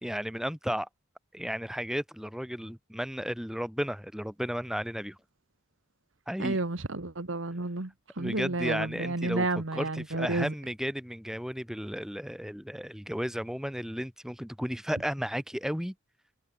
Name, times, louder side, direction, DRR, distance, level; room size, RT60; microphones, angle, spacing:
voice 1, 0.0-0.9 1.3-5.2 6.3-6.6 8.2-9.5 9.7-15.9, equal, 5° right, 3.8 m, -34 dB
voice 2, 6.4-7.9 8.2-10.5, right 2 dB, 80° right, 1.5 m, -31 dB
head